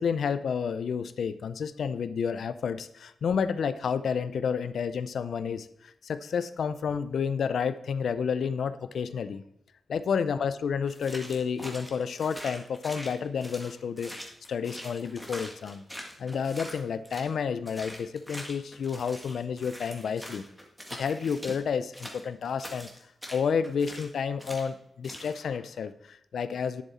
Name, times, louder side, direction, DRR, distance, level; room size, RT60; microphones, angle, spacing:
voice 1, 0.0-5.7 6.0-9.4 9.9-14.1 14.5-15.8 16.2-20.4 21.0-22.9 23.3-26.8, left 6 dB, 70° left, 13 dB, 0.5 m, -30 dB
sound 1, 10.9-17.3 17.7-21.6 21.9-24.1 24.4-24.7 25.0-25.4, equal, ahead, 1.7 m, -43 dB
10.5 x 7.5 x 4.2 m, 0.77 s
wide cardioid pair, 155°, 0 cm